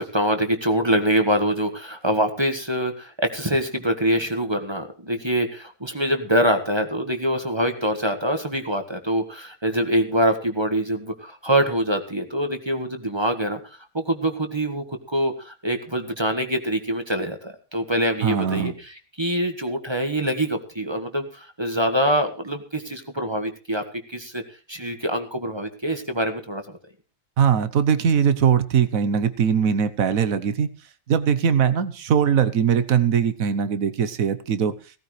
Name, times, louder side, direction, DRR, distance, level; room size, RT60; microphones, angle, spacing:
voice 1, 0.0-23.8 24.1-24.4 24.7-26.6, equal, 20° right, 6 dB, 1.5 m, -24 dB
voice 2, 18.2-18.7 27.4-30.7 31.1-34.7, right 7 dB, 80° right, 12 dB, 1.4 m, -21 dB
18.0 x 14.0 x 3.3 m, 0.35 s
omnidirectional pair, 1.4 m